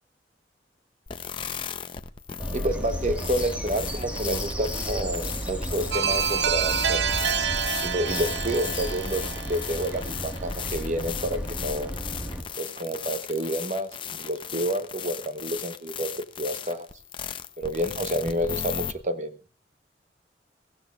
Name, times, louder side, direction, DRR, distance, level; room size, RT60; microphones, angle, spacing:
sound 1, 1.1-18.9, left 8 dB, 30° left, 0.7 m, -36 dB
Bird vocalization bird call bird song, 2.4-12.4, equal, 5° right, 1.5 m, -33 dB
voice 1, 2.5-7.3 7.8-11.9 12.6-16.1 16.4-16.9 17.6-19.3, right 1 dB, 40° right, 10 dB, 1.0 m, -29 dB
sound 2, 5.9-10.7, right 8 dB, 85° right, 0.7 m, -28 dB
21.5 x 15.5 x 2.4 m, 0.35 s
head